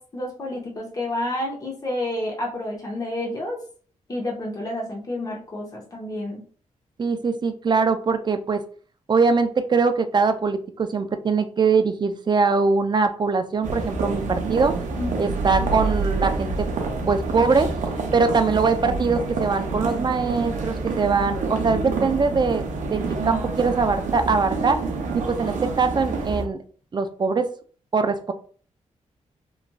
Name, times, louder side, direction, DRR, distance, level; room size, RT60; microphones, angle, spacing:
voice 1, 0.0-3.6 4.1-6.4 15.0-15.2, left 1 dB, 30° left, -2 dB, 0.8 m, -30 dB
voice 2, 7.0-8.6 9.1-14.7 15.2-16.7 17.1-17.7 18.1-22.6 22.9-23.0 23.3-24.8 25.1-26.6 26.9-27.5 27.9-28.3, right 4 dB, 35° right, 9 dB, 0.4 m, -22 dB
sound 1, 13.6-26.4, right 3 dB, 85° right, 0.6 m, -27 dB
3.0 x 2.4 x 2.2 m, 0.43 s
cardioid pair, 75°, 13 cm